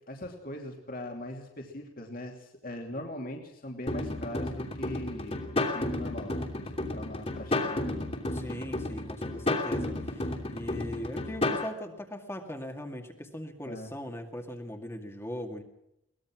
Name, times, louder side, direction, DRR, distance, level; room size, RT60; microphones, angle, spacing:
voice 1, 0.1-8.1 13.7-13.9, left 1 dB, 45° left, 2 dB, 2.8 m, -40 dB
sound 1, 3.9-11.7, left 2 dB, 30° left, 3.0 m, -32 dB
voice 2, 8.3-15.6, left 1 dB, 15° left, 3 dB, 2.2 m, -39 dB
23.0 x 19.5 x 6.2 m, 0.82 s
head